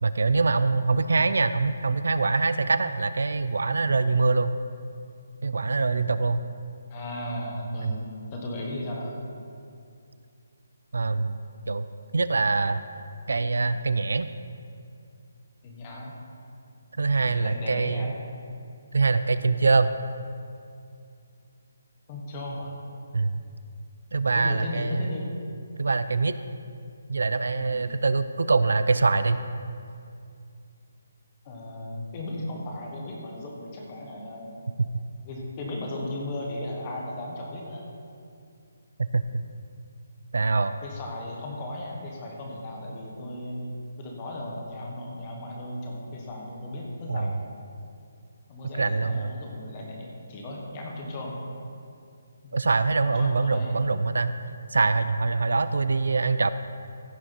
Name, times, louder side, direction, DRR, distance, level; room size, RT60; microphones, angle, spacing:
voice 1, 0.0-4.6 5.4-6.4 7.8-7.9 10.9-11.9 12.1-12.8 13.3-14.3 17.0-18.1 18.9-19.9 23.1-23.4 24.1-25.2 25.8-26.3 27.1-29.4 34.8-34.9 39.0-39.4 40.3-40.7 47.1-47.3 48.8-49.3 52.5-54.3 54.7-56.5, right 3 dB, 80° right, 12 dB, 0.5 m, -24 dB
voice 2, 6.9-9.2 15.6-16.1 17.2-18.1 19.4-19.6 22.1-22.7 24.3-25.3 27.6-27.8 31.4-34.5 35.2-37.8 40.8-43.7 44.0-47.4 48.5-51.3 52.4-52.6 53.0-53.8, left 1 dB, 15° left, -2 dB, 1.3 m, -36 dB
15.5 x 7.0 x 4.5 m, 2.4 s
hypercardioid pair, 180°, 0 cm